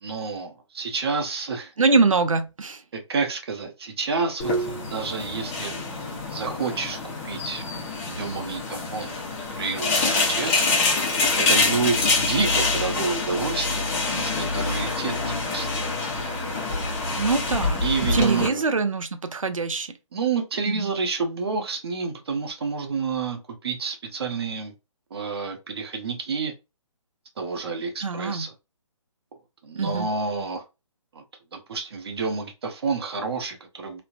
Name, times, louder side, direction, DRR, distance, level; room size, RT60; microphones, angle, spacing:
voice 1, 0.0-1.7 2.9-5.8 6.3-7.6 8.0-9.1 9.6-10.7 11.5-15.1 15.5-15.9 17.8-18.6 20.1-24.7 25.1-26.5 27.4-28.5 29.6-30.6 31.1-31.2 31.5-34.0, right 4 dB, 50° right, 0.7 m, -29 dB
voice 2, 1.8-2.8 17.2-17.8 18.1-19.9 20.7-20.9 28.0-28.5 29.7-30.1, right 4 dB, 90° right, 0.5 m, -23 dB
sound 1, 4.4-18.5, left 3 dB, 25° left, 0.8 m, -26 dB
3.1 x 2.1 x 2.4 m
figure-of-eight pair, 145°, 17 cm